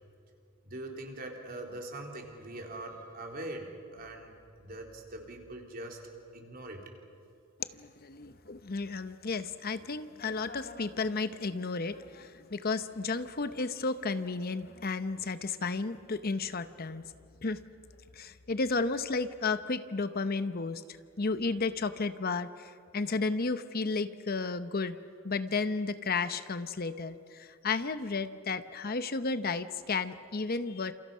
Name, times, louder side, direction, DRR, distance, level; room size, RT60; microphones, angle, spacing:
voice 1, 0.6-4.3 4.6-6.0 6.3-6.9, right 1 dB, 45° right, 1 dB, 3.8 m, -42 dB
voice 2, 7.6-17.0 17.4-17.6 18.1-20.8 21.2-25.0 25.2-30.9, left 4 dB, 45° left, 11 dB, 0.9 m, -33 dB
29.5 x 28.0 x 5.6 m, 2.5 s
head